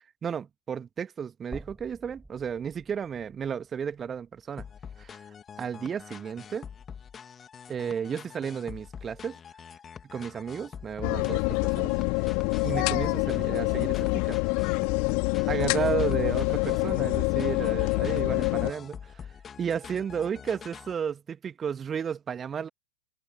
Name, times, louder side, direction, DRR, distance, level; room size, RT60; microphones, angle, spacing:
voice 1, 0.2-4.7 5.0-5.2 5.6-6.7 7.7-9.4 10.1-11.9 12.6-14.4 15.5-19.2 19.6-22.7, right 7 dB, 20° right, 2.0 m, -33 dB
sound 1, 1.5-5.7 6.0-6.1 7.5-7.6, right 2 dB, 5° right, 7.2 m, -50 dB
sound 2, 4.6-21.0, left 7 dB, 20° left, 2.9 m, -45 dB
sound 3, 11.0-18.7, left 38 dB, 45° left, 2.7 m, -26 dB
figure-of-eight pair, 90°, 0 cm